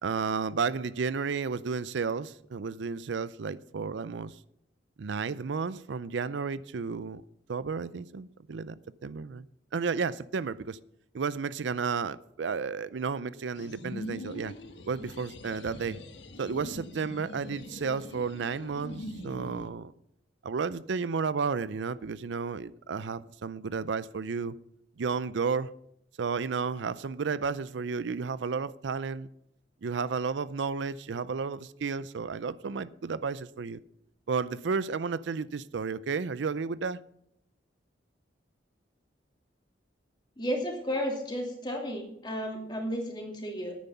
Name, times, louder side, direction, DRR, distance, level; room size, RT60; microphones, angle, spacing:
voice 1, 0.0-4.4 5.0-7.2 7.5-8.8 9.0-9.5 9.7-10.8 11.1-14.5 14.9-16.0 16.4-19.9 20.4-24.6 25.0-25.7 26.2-29.3 29.8-33.8 34.3-37.0, right 5 dB, 75° right, 0.5 m, -32 dB
sound 1, 13.5-19.7, equal, 75° left, 1.4 m, -43 dB
voice 2, 40.4-43.8, equal, 25° left, 2.6 m, -33 dB
10.5 x 9.4 x 5.7 m
head